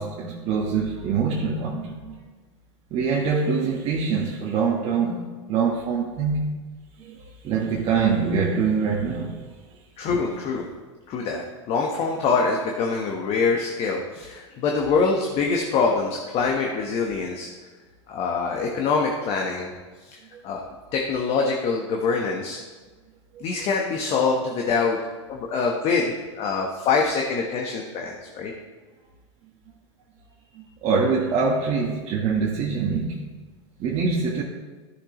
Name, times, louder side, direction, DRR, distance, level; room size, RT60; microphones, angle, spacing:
voice 1, 0.0-2.2 2.9-6.5 7.0-9.4 20.3-20.4 23.3-23.4 30.5-33.3 33.8-34.4, right 5 dB, 40° right, -3 dB, 1.4 m, -24 dB
voice 2, 10.0-10.6 11.1-17.5 18.1-19.7 20.0-20.2 20.4-20.6 20.9-22.6 23.4-25.0 25.3-28.5, left 4 dB, 40° left, 0 dB, 1.3 m, -24 dB
14.0 x 6.6 x 3.2 m, 1.3 s
hypercardioid pair, 100°, 16 cm